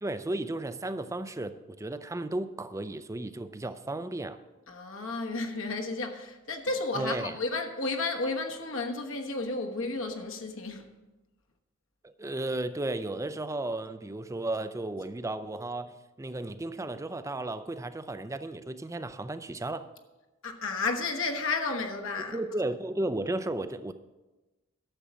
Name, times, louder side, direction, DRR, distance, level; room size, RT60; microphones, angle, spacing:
voice 1, 0.0-4.4 6.9-7.4 12.0-19.9 22.3-23.9, right 2 dB, 15° right, 0.5 m, -34 dB
voice 2, 4.7-10.9 20.4-22.4, left 3 dB, 65° left, 1.2 m, -32 dB
12.0 x 7.2 x 6.2 m
head